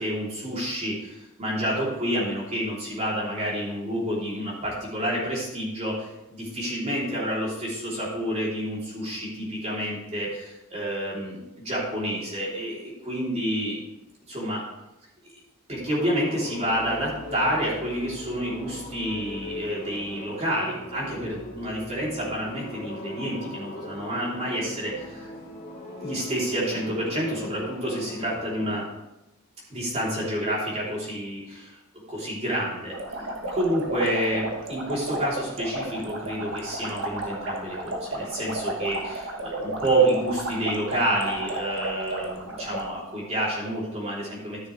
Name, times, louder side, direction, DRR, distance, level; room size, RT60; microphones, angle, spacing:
voice 1, 0.0-11.4 11.6-13.8 14.3-14.6 15.7-25.3 26.0-28.8 29.7-31.8 32.1-44.7, right 1 dB, 30° right, -6 dB, 3.5 m, -29 dB
sound 1, 15.8-28.7, left 1 dB, 45° left, 2.3 m, -40 dB
sound 2, 32.9-42.9, right 1 dB, 60° right, 1.4 m, -33 dB
13.5 x 6.7 x 3.4 m, 0.96 s
head